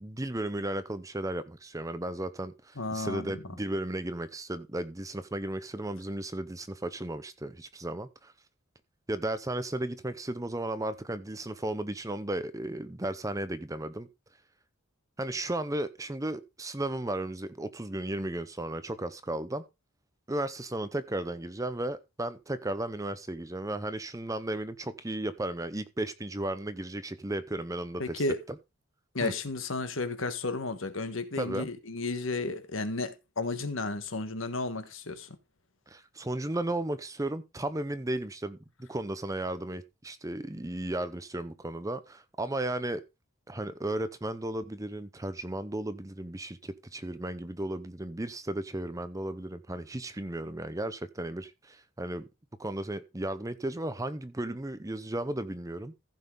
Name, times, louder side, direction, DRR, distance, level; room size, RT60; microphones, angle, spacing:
voice 1, 0.0-8.3 9.1-14.1 15.2-19.6 20.3-28.2 29.2-29.3 31.4-31.7 35.9-43.0 43.5-52.2 52.6-55.9, right 1 dB, 15° right, 0.7 m, -34 dB
voice 2, 2.8-3.4 28.0-28.4 29.1-35.4, left 3 dB, 70° left, 1.4 m, -33 dB
15.0 x 5.6 x 3.8 m
head